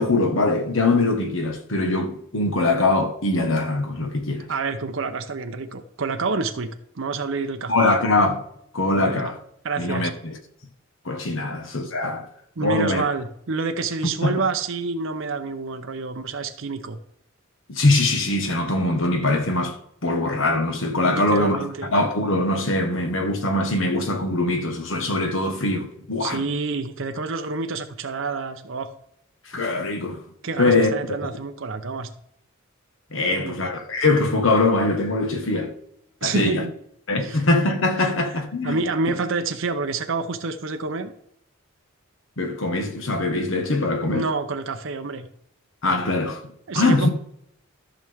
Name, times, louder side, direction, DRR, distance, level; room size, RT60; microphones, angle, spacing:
voice 1, 0.0-4.5 7.7-8.4 8.7-9.3 9.8-10.3 11.0-12.2 12.6-13.0 14.2-14.3 17.7-26.4 29.5-30.2 30.6-31.3 33.1-35.7 36.2-36.6 37.1-38.8 42.4-44.3 45.8-46.4 46.7-47.1, left 2 dB, 70° left, 1.4 m, -22 dB
voice 2, 4.5-7.7 8.9-9.3 9.6-10.1 12.6-17.0 21.1-22.0 26.2-28.9 30.4-32.1 33.2-33.6 36.2-36.7 37.2-37.4 38.0-38.1 38.6-41.1 44.1-45.3 46.7-47.1, right 4 dB, 65° right, 0.7 m, -28 dB
14.0 x 6.1 x 3.6 m
head